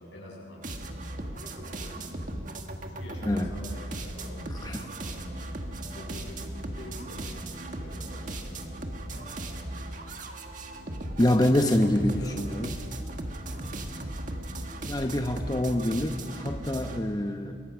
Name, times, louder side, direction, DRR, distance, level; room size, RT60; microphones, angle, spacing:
voice 1, 0.0-2.1 2.9-10.0 11.4-12.5, left 1 dB, 85° left, -3 dB, 7.1 m, -47 dB
sound 1, 0.6-17.0, right 1 dB, 45° right, 1.7 m, -37 dB
sound 2, 4.7-15.2, equal, 75° right, 6.5 m, -49 dB
voice 2, 11.2-12.8 14.8-17.6, left 1 dB, 20° left, 5 dB, 0.9 m, -26 dB
28.0 x 23.0 x 6.1 m, 2.6 s
head